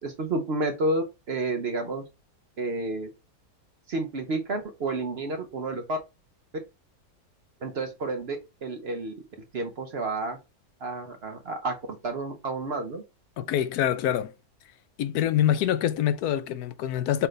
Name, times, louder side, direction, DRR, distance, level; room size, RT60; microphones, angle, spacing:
voice 1, 0.0-2.1 2.6-3.1 3.9-6.0 7.6-9.1 9.5-10.4 10.8-13.0, right 2 dB, 50° right, 0.8 m, -30 dB
voice 2, 13.4-14.3 15.0-17.3, left 10 dB, 80° left, 1.1 m, -25 dB
5.7 x 2.6 x 3.2 m
omnidirectional pair, 1.6 m